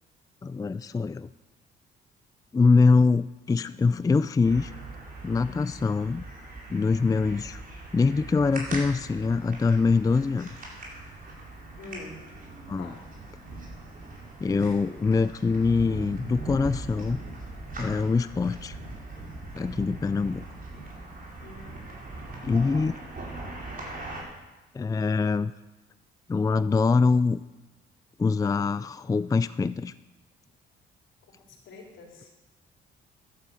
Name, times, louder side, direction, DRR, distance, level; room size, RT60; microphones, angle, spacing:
voice 1, 0.4-1.3 2.5-4.7 5.2-6.3 6.7-7.6 7.9-10.5 12.7-13.0 14.4-17.2 17.8-18.8 19.5-20.4 22.4-23.0 24.7-25.5 26.3-27.4 28.2-29.9, left 4 dB, 20° left, 14 dB, 0.4 m, -24 dB
sound 1, 4.4-24.2, right 2 dB, 45° right, 5.1 m, -40 dB
voice 2, 11.8-12.2 12.8-13.0 14.5-14.8 21.4-22.0 22.3-22.4 31.5-32.3, left 2 dB, 75° left, -1 dB, 4.4 m, -46 dB
11.5 x 11.5 x 7.8 m, 1.1 s
cardioid pair, 90°, 20 cm